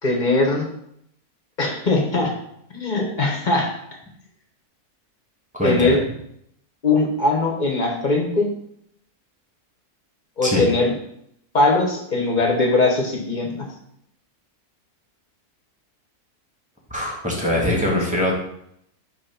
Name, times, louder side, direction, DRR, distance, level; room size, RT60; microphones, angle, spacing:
voice 1, 0.0-0.6 1.6-2.3 2.7-3.7 5.6-6.0 6.8-8.5 10.4-10.9 11.5-13.7, left 2 dB, 35° left, 0 dB, 1.0 m, -20 dB
voice 2, 5.5-6.0 10.4-10.6 16.9-18.4, left 1 dB, 5° right, -3 dB, 1.4 m, -22 dB
5.6 x 3.1 x 5.6 m, 0.73 s
omnidirectional pair, 1.6 m